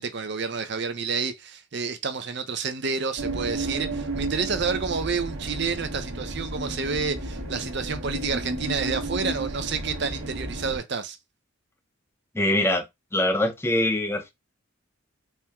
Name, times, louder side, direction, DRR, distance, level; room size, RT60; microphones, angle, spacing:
voice 1, 0.0-11.2, right 5 dB, 55° right, 0.6 m, -29 dB
sound 1, 3.2-10.8, right 2 dB, 75° right, 1.1 m, -32 dB
voice 2, 12.3-12.9 13.1-14.3, left 1 dB, 10° left, 0.6 m, -23 dB
4.4 x 2.1 x 3.5 m
head